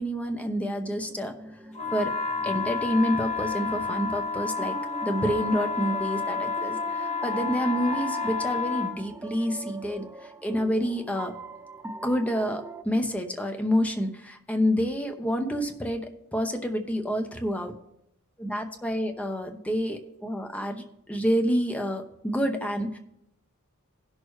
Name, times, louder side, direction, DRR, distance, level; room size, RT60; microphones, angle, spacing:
voice 1, 0.0-1.3 1.9-2.1 2.4-11.3 12.0-17.7 18.4-23.0, equal, 5° left, 4 dB, 0.8 m, -28 dB
sound 1, 1.0-12.8, right 3 dB, 10° right, 0.4 m, -42 dB
sound 2, 1.7-9.0, left 5 dB, 35° left, 1.5 m, -30 dB
16.5 x 6.4 x 3.1 m, 0.80 s
head